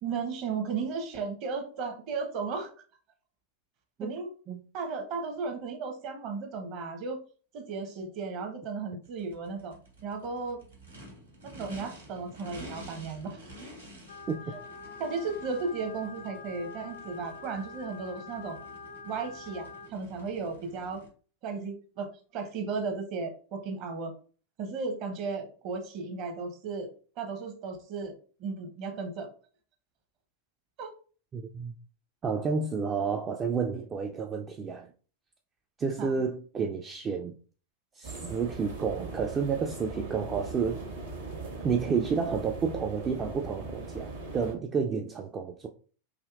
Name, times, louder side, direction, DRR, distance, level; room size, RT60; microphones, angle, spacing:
voice 1, 0.0-2.7 4.0-4.3 4.7-7.2 7.5-9.8 10.0-10.6 11.4-13.4 15.0-18.6 19.0-21.0 21.4-24.1 24.6-26.9 27.2-28.1 28.4-29.3 30.8-30.9 36.0-36.1, right 4 dB, 40° right, 0.8 m, -35 dB
Race car auto racing / Idling / Accelerating revving vroom, 9.0-21.1, right 1 dB, 80° right, 1.5 m, -50 dB
sound 1, 14.1-19.9, left 4 dB, 75° left, 0.5 m, -45 dB
voice 2, 31.3-31.7 32.2-34.9 35.8-37.3 38.0-40.8 41.6-45.7, right 5 dB, 25° right, 0.4 m, -30 dB
sound 2, 38.0-44.5, right 3 dB, 65° right, 1.1 m, -40 dB
4.9 x 2.7 x 2.4 m
figure-of-eight pair, 90°, 0 cm